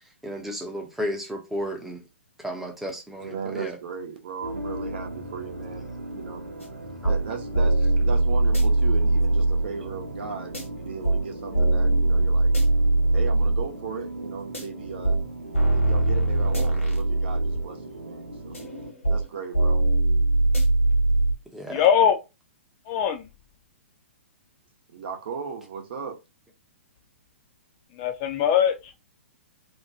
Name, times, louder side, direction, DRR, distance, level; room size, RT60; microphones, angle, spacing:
voice 1, 0.2-2.0 2.4-3.8 7.0-7.1 21.5-21.8, equal, 5° right, 0.7 m, -33 dB
voice 2, 3.2-6.4 7.1-12.5 13.1-15.2 15.7-18.6 19.1-19.8 24.9-26.2, right 6 dB, 55° right, 0.8 m, -37 dB
sound 1, 4.4-18.9, right 1 dB, 85° right, 0.8 m, -38 dB
sound 2, 6.6-6.7 7.0-7.2 7.5-9.7 10.5-10.6 11.0-11.2 11.5-13.7 14.5-14.6 15.0-15.2 15.5-17.7 18.5-19.3 19.5-21.3, right 2 dB, 80° left, 1.3 m, -21 dB
voice 3, 21.7-22.2 22.9-23.3 28.0-28.7, left 8 dB, 35° left, 0.5 m, -21 dB
2.9 x 2.2 x 2.6 m
figure-of-eight pair, 115°, 7 cm